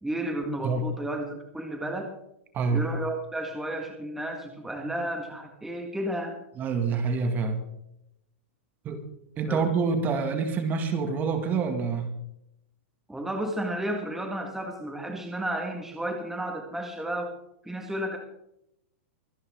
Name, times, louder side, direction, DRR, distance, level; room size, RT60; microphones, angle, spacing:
voice 1, 0.0-2.1 2.7-6.4 9.5-9.6 13.1-17.3 17.6-18.2, right 1 dB, 5° right, 2 dB, 1.7 m, -32 dB
voice 2, 2.5-2.9 6.6-7.6 8.8-9.0 9.4-12.1, right 4 dB, 25° right, 7 dB, 2.0 m, -27 dB
24.5 x 9.6 x 3.7 m, 0.80 s
hypercardioid pair, 145°, 7 cm